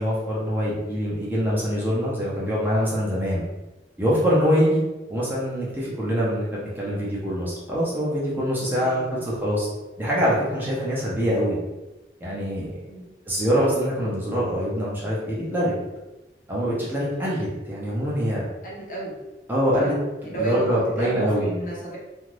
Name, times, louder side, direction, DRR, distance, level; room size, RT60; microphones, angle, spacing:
voice 1, 0.0-3.5 4.0-4.8 5.1-9.7 10.0-11.6 12.2-12.7 13.3-15.7 16.5-18.4 19.5-20.0 20.3-21.5, equal, 10° right, -6 dB, 0.6 m, -24 dB
voice 2, 8.7-9.2 12.9-13.0 18.6-19.2 19.8-22.0, right 2 dB, 45° left, -4 dB, 0.7 m, -32 dB
2.5 x 2.3 x 3.2 m, 1.1 s
head